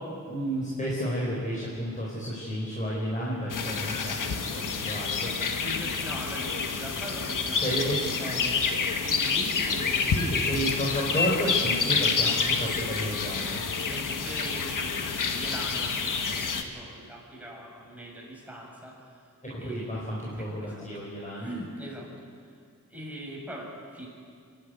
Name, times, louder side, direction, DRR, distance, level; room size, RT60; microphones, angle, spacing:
voice 1, 0.3-5.4 7.6-8.0 10.1-13.6 19.4-21.5, equal, 25° left, -5 dB, 4.7 m, -31 dB
sound 1, 3.5-16.6, left 5 dB, 70° left, 1.6 m, -28 dB
voice 2, 5.5-10.6 12.1-12.4 13.8-19.3 19.6-20.1 20.4-20.9 21.4-22.1 22.9-24.1, right 1 dB, 5° right, -3 dB, 6.9 m, -41 dB
26.0 x 12.0 x 9.4 m, 2.2 s
cardioid pair, 80°, 32 cm